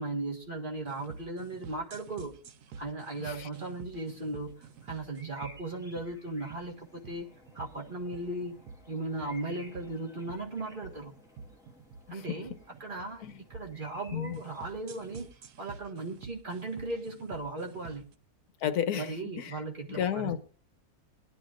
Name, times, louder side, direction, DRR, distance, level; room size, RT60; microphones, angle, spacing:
voice 1, 0.0-2.3 2.8-7.3 7.5-8.5 8.9-11.1 12.1-12.5 12.8-15.3 15.6-18.0 18.9-20.4, right 2 dB, 35° right, 1.7 m, -37 dB
sound 1, 0.9-18.1, right 5 dB, 80° right, 1.3 m, -49 dB
sound 2, 4.4-15.3, left 1 dB, ahead, 1.5 m, -57 dB
voice 2, 12.1-12.4 13.2-13.4 14.1-14.4 18.6-19.6 19.9-20.4, left 9 dB, 75° left, 1.3 m, -32 dB
20.0 x 11.5 x 2.5 m
omnidirectional pair, 1.6 m